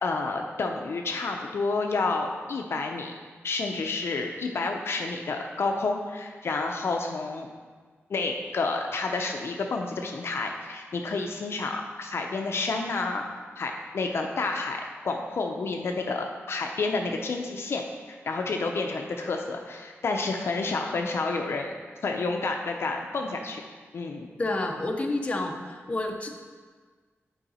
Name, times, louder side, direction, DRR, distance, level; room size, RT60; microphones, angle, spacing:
voice 1, 0.0-3.1 3.4-7.5 8.1-13.2 13.6-14.8 15.0-17.8 18.1-21.7 22.0-23.6 23.9-24.3, left 3 dB, 60° left, 3 dB, 0.6 m, -29 dB
voice 2, 24.4-26.3, left 2 dB, 25° left, 2 dB, 0.7 m, -29 dB
8.1 x 4.8 x 4.2 m, 1.5 s
wide cardioid pair, 140°, 5 cm